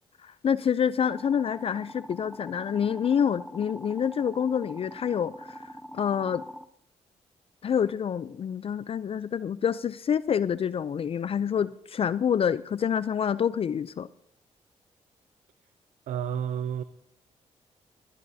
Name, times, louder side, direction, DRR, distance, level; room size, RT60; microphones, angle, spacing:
voice 1, 0.2-6.4 7.6-14.1, left 8 dB, 50° left, 0.4 m, -27 dB
sound 1, 1.0-6.7, equal, ahead, 0.7 m, -44 dB
voice 2, 16.1-16.8, right 8 dB, 80° right, 0.6 m, -30 dB
21.5 x 17.5 x 2.7 m
cardioid pair, 70°, 13 cm